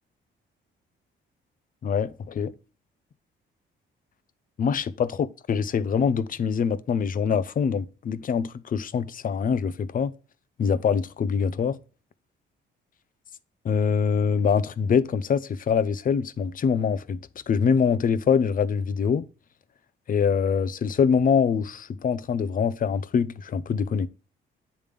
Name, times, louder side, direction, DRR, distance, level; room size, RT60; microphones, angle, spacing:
voice 1, 1.8-2.5 4.6-10.1 10.6-11.8 13.6-17.2 17.5-19.3 20.1-24.1, left 6 dB, 45° left, 0.6 m, -24 dB
9.1 x 3.4 x 3.3 m
cardioid pair, 90°, 20 cm